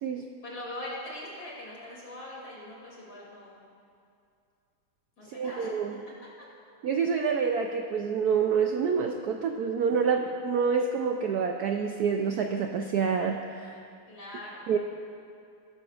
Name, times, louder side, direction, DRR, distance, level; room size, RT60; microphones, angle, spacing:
voice 1, 0.4-3.6 5.2-5.7 6.1-6.2 14.1-14.7, left 1 dB, 50° left, -5 dB, 3.3 m, -41 dB
voice 2, 5.4-6.0 6.8-13.8 14.7-14.8, right 6 dB, 80° right, 4 dB, 0.8 m, -27 dB
16.5 x 13.0 x 2.5 m, 2.5 s
omnidirectional pair, 2.3 m